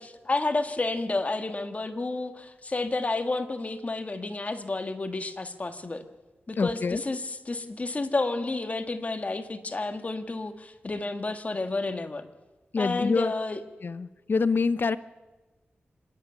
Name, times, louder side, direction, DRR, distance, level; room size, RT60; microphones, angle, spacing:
voice 1, 0.0-6.0 6.5-7.2 7.5-12.3 12.8-13.6, left 2 dB, 35° left, 7 dB, 1.6 m, -30 dB
voice 2, 6.6-7.0 12.7-13.3 13.8-15.0, left 4 dB, 55° left, 15 dB, 0.7 m, -26 dB
25.5 x 11.5 x 9.2 m, 1.2 s
wide cardioid pair, 80°, 4 cm